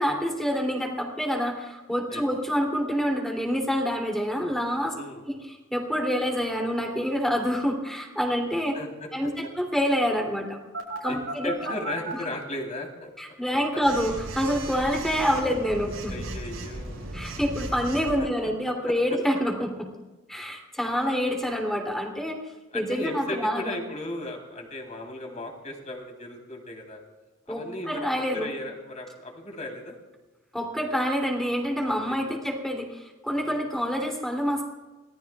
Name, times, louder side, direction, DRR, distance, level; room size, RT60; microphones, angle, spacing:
voice 1, 0.0-4.9 5.3-5.4 5.7-8.8 9.1-10.6 11.0-11.7 13.2-16.1 17.1-19.9 20.3-22.4 22.7-23.8 27.5-28.5 30.5-34.7, equal, ahead, 1 dB, 3.1 m, -27 dB
voice 2, 4.9-5.3 8.7-9.1 9.4-9.5 11.1-13.1 13.7-13.8 16.1-17.2 18.2-18.5 18.9-19.0 21.1-21.2 22.7-27.0 27.5-28.1 28.3-30.0 31.9-32.4 33.4-33.7, left 1 dB, 35° left, 2 dB, 3.7 m, -36 dB
Telephone, 10.7-12.1 13.8-18.2, right 2 dB, 90° right, 5.8 m, -36 dB
27.5 x 18.5 x 2.4 m, 1.2 s
head